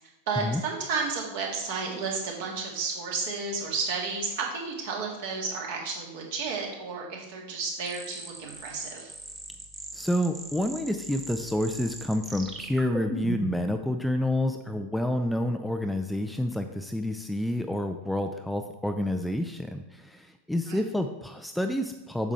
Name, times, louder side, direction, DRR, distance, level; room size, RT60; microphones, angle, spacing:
voice 1, 0.3-9.1 20.7-20.8, right 4 dB, 50° right, 0 dB, 1.9 m, -32 dB
sound 1, 7.9-13.7, right 3 dB, 20° right, 1.1 m, -39 dB
voice 2, 9.9-22.3, left 1 dB, ahead, 6 dB, 0.4 m, -29 dB
8.1 x 6.0 x 3.4 m, 1.0 s
figure-of-eight pair, 90°, 0 cm